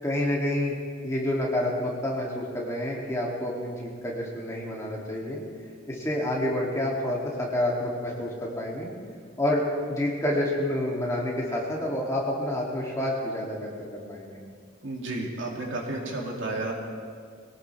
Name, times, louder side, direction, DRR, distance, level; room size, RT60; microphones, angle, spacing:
voice 1, 0.0-0.8 1.0-5.4 5.9-8.9 9.4-14.4, left 1 dB, 15° left, -4 dB, 2.7 m, -28 dB
voice 2, 14.8-16.7, right 2 dB, 70° right, -1 dB, 2.7 m, -32 dB
23.0 x 17.5 x 3.5 m, 2.1 s
head